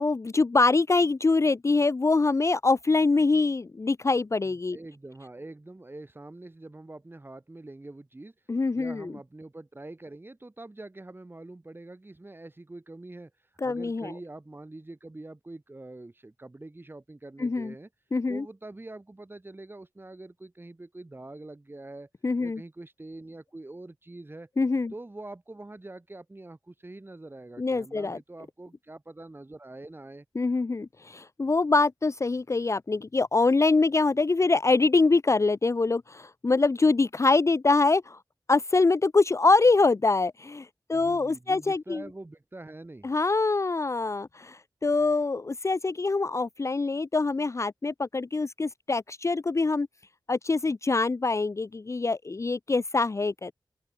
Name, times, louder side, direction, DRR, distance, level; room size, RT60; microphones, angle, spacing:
voice 1, 0.0-4.8 8.5-9.1 13.6-14.1 17.4-17.7 18.1-18.4 22.2-22.6 24.6-24.9 27.6-28.2 30.4-38.2 38.5-42.0 43.0-49.9 50.3-53.5, left 3 dB, 35° left, 0.7 m, -24 dB
voice 2, 4.4-8.3 8.7-13.3 13.6-17.9 18.3-22.1 22.4-24.5 24.9-30.2 40.9-43.1, right 2 dB, 25° right, 4.9 m, -44 dB
open air
wide cardioid pair, 100°, 8 cm